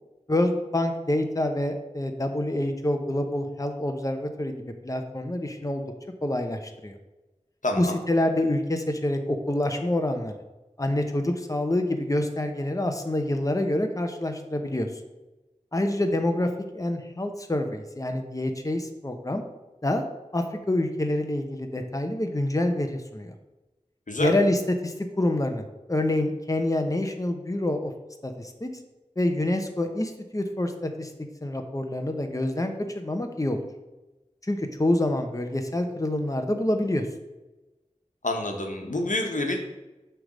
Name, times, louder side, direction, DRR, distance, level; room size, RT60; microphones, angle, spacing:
voice 1, 0.3-4.5 4.8-5.8 6.2-6.9 7.8-10.3 10.8-14.9 15.7-19.4 19.8-20.0 20.3-23.3 24.2-27.9 28.2-28.7 29.2-31.1 31.4-33.6 34.4-37.1, left 1 dB, 25° left, 5 dB, 0.8 m, -27 dB
voice 2, 7.6-8.0 24.1-24.3 38.2-39.6, left 2 dB, 85° left, 3 dB, 1.0 m, -27 dB
7.7 x 3.4 x 6.2 m, 1.1 s
wide cardioid pair, 45°, 13 cm